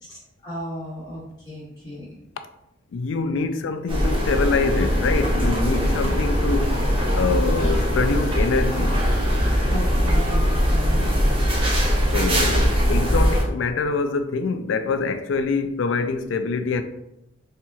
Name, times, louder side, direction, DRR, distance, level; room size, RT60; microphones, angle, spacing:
voice 1, 0.4-2.1 5.7-6.1 9.7-11.0, equal, 20° left, 1.2 m, -34 dB
voice 2, 2.9-6.8 7.1-9.0 12.1-16.8, left 4 dB, 90° left, 0.4 m, -25 dB
sound 1, 3.9-13.4, equal, 30° right, 0.8 m, -21 dB
4.2 x 2.8 x 2.3 m
head